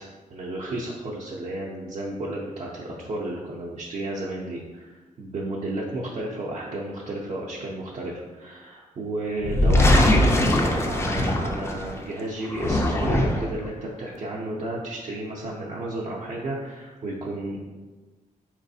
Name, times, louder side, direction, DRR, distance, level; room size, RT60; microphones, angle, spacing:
voice 1, 0.0-17.7, right 1 dB, 50° right, -4 dB, 0.5 m, -32 dB
sound 1, 9.4-12.0 12.5-13.6, left 1 dB, 20° left, 0.3 m, -21 dB
4.0 x 3.0 x 2.6 m, 1.3 s
wide cardioid pair, 145°, 14 cm